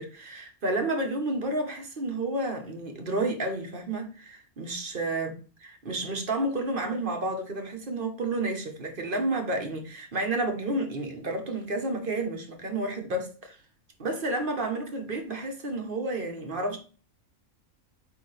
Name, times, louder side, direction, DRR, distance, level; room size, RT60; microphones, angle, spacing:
voice 1, 0.0-5.3 5.6-13.6 14.0-16.8, right 2 dB, 40° right, 1.2 m, -31 dB
8.4 x 3.4 x 3.3 m
omnidirectional pair, 1.5 m